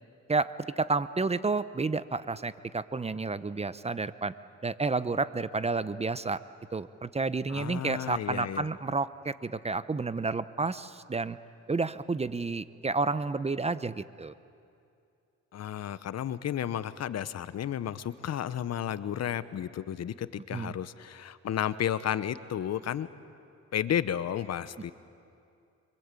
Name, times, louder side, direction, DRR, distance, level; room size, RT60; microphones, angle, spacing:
voice 1, 0.3-4.3 4.6-6.4 6.7-11.4 11.7-14.3 20.5-20.7, right 3 dB, 20° right, 14 dB, 0.8 m, -30 dB
voice 2, 7.5-8.7 15.5-23.1 23.7-24.9, left 10 dB, 60° left, 15 dB, 1.0 m, -32 dB
27.0 x 24.0 x 8.4 m, 2.5 s
cardioid pair, 90°, 30 cm